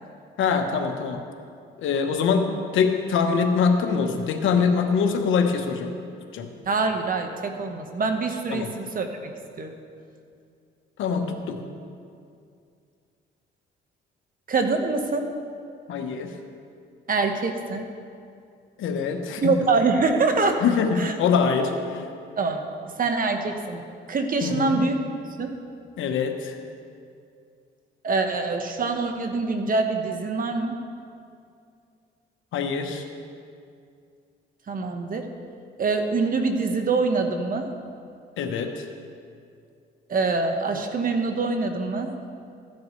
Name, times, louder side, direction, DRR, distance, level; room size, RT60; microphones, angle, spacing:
voice 1, 0.4-1.2 1.8-5.9 6.3-6.5 8.5-8.7 11.0-11.6 15.9-16.3 18.8-19.5 20.6-22.0 24.4-24.8 26.0-26.5 32.5-33.0 38.4-38.8, left 5 dB, 80° left, 5 dB, 1.1 m, -24 dB
voice 2, 6.7-9.1 9.6-9.7 14.5-15.3 17.1-17.9 19.4-20.6 21.0-21.1 22.4-22.6 23.0-25.0 25.4-25.5 28.0-30.7 34.7-35.3 35.8-37.7 40.1-42.1, right 3 dB, 45° right, 5 dB, 1.2 m, -24 dB
15.0 x 10.5 x 3.2 m, 2.4 s
cardioid pair, 90°, 20 cm